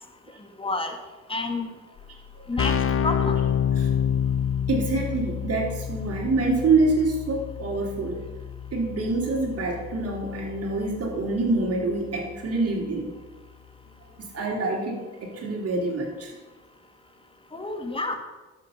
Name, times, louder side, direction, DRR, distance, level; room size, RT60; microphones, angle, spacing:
voice 1, 0.6-0.9 1.3-1.7 2.5-2.8 3.0-3.4 17.5-18.2, left 2 dB, 20° left, 5 dB, 1.7 m, -28 dB
Keyboard (musical), 2.0-2.1 2.3-12.9, left 8 dB, 45° left, 0.7 m, -29 dB
voice 2, 4.7-8.2 8.7-13.1 14.3-16.3, right 3 dB, 55° right, 0 dB, 3.5 m, -26 dB
11.5 x 7.9 x 5.7 m, 1.2 s
cardioid pair, 90°, 30 cm